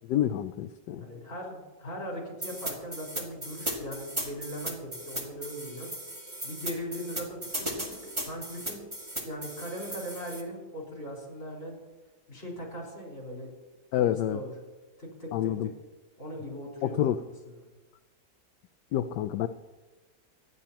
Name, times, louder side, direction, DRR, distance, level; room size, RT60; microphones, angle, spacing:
voice 1, 0.1-1.1 13.9-14.4 15.3-15.7 16.8-17.2 18.9-19.5, left 11 dB, 75° left, 8 dB, 1.1 m, -28 dB
voice 2, 0.9-5.9 6.4-8.8 9.2-11.8 12.3-13.5 13.9-14.5 15.0-15.7 16.2-17.6, equal, 45° left, -3 dB, 5.1 m, -39 dB
sound 1, 2.4-10.4, right 1 dB, 15° right, 2.1 m, -36 dB
26.0 x 11.0 x 2.9 m, 1.2 s
omnidirectional pair, 1.9 m